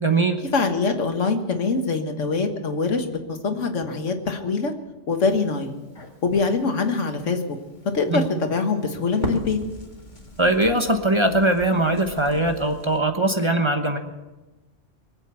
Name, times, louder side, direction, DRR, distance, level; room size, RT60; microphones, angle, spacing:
voice 1, 0.0-0.4 8.1-8.3 10.4-14.0, right 2 dB, 25° right, 5 dB, 1.1 m, -21 dB
voice 2, 0.5-4.7 5.1-5.8 6.2-7.6 7.9-9.6, left 4 dB, 80° left, 6 dB, 1.8 m, -24 dB
Crackle, 5.2-13.0, left 1 dB, 40° left, 2.3 m, -39 dB
23.5 x 8.2 x 7.0 m, 1.1 s
omnidirectional pair, 1.3 m